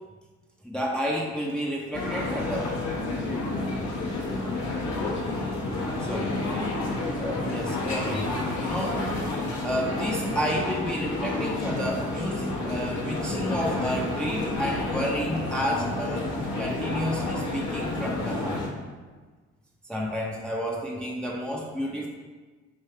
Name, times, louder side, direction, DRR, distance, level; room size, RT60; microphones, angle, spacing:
voice 1, 0.6-2.7 6.0-6.4 7.2-8.3 8.6-9.1 9.6-16.3 16.6-18.7 19.9-22.1, equal, 5° left, -2 dB, 0.6 m, -30 dB
sound 1, 1.9-18.7, left 2 dB, 60° left, 1.0 m, -30 dB
3.2 x 2.7 x 4.3 m, 1.4 s
supercardioid pair, 50°, 31 cm